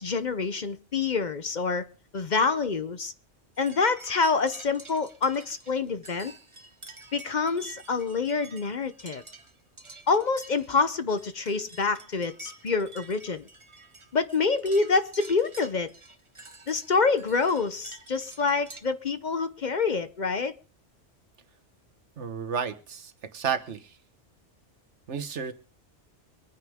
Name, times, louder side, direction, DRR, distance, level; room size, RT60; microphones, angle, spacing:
voice 1, 0.0-1.9 2.1-3.1 3.6-6.3 7.1-9.2 10.1-13.5 14.1-15.9 16.7-20.5, left 4 dB, 45° left, 0.8 m, -26 dB
sound 1, 3.6-18.8, right 3 dB, 25° right, 1.3 m, -49 dB
voice 2, 22.2-24.0 25.1-25.5, right 7 dB, 75° right, 1.4 m, -32 dB
24.0 x 9.4 x 3.5 m
omnidirectional pair, 1.2 m